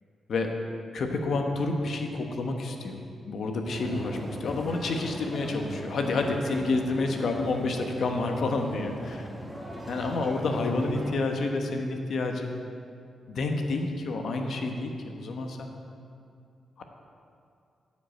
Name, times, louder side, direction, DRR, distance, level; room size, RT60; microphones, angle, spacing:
voice 1, 0.9-9.2 9.9-12.6 13.3-15.7 16.8-16.9, left 3 dB, 70° left, 3 dB, 1.1 m, -29 dB
sound 1, 3.7-11.1, right 1 dB, 5° right, 1.5 m, -39 dB
9.5 x 5.4 x 7.7 m, 2.5 s
cardioid pair, 70°, 0 cm